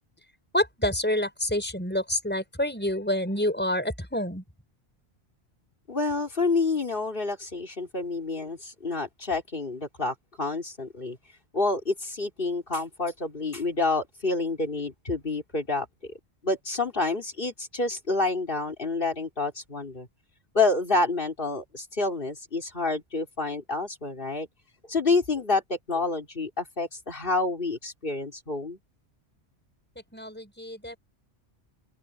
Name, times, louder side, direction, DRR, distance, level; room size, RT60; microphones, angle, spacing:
voice 1, 0.5-4.4 30.1-31.0, left 1 dB, 10° left, 5.9 m, -28 dB
voice 2, 5.9-11.2 11.5-15.9 16.4-20.1 20.5-24.5 24.9-28.8, left 3 dB, 55° left, 3.7 m, -28 dB
open air
omnidirectional pair, 1.1 m